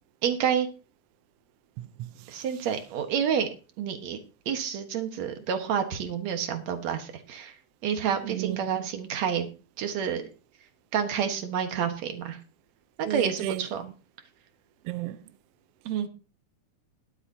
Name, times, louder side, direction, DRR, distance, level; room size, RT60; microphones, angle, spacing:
voice 1, 0.2-0.7 2.3-3.5 3.8-4.2 4.5-7.5 7.8-9.5 9.8-10.2 10.9-12.4 13.0-13.8 15.8-16.1, right 8 dB, 65° right, 2.5 m, -29 dB
voice 2, 1.8-2.1 8.2-8.6 13.0-13.6 14.8-15.2, right 13 dB, 90° right, 1.3 m, -32 dB
20.5 x 8.1 x 2.8 m
omnidirectional pair, 3.5 m